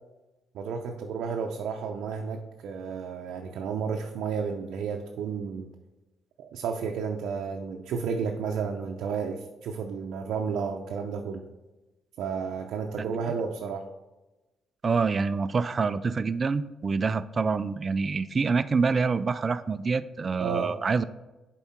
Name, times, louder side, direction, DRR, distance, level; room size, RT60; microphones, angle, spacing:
voice 1, 0.5-5.7 6.4-11.4 12.2-13.9 20.4-20.8, right 6 dB, 80° right, 2 dB, 0.6 m, -32 dB
voice 2, 14.8-21.0, right 4 dB, 40° right, 14 dB, 0.3 m, -26 dB
7.1 x 4.6 x 4.4 m, 1.1 s
cardioid pair, 90°, 0 cm